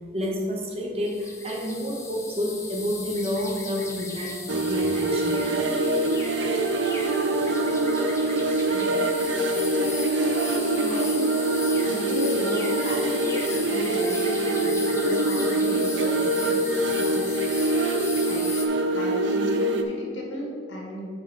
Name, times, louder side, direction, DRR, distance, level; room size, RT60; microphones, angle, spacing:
voice 1, 0.1-5.4, equal, 30° right, -1 dB, 1.1 m, -29 dB
sound 1, 1.0-18.7, left 3 dB, 15° left, 0.7 m, -37 dB
sound 2, 4.5-19.8, right 2 dB, 75° right, 0.6 m, -24 dB
voice 2, 8.7-9.8 10.8-11.3 11.8-16.6 16.9-17.5 18.3-18.5 18.9-21.1, left 1 dB, 85° left, -2 dB, 1.7 m, -35 dB
8.1 x 4.7 x 4.7 m, 2.1 s
head